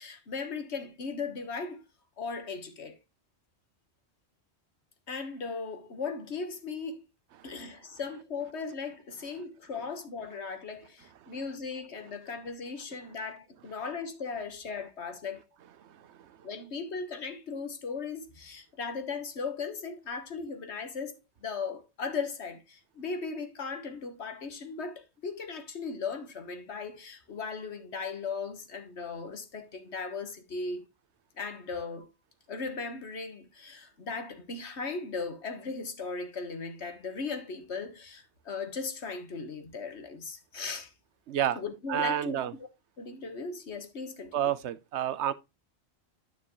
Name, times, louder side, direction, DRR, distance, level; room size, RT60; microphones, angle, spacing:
voice 1, 0.0-1.8 2.2-3.0 5.1-7.0 7.4-15.4 16.4-21.1 21.4-30.9 31.4-32.1 32.5-40.9 41.5-42.6 43.0-44.5, left 4 dB, 75° left, 1.6 m, -37 dB
voice 2, 41.3-41.6 41.9-42.5 44.3-45.3, right 10 dB, 85° right, 1.0 m, -29 dB
9.7 x 6.1 x 3.1 m
omnidirectional pair, 1.1 m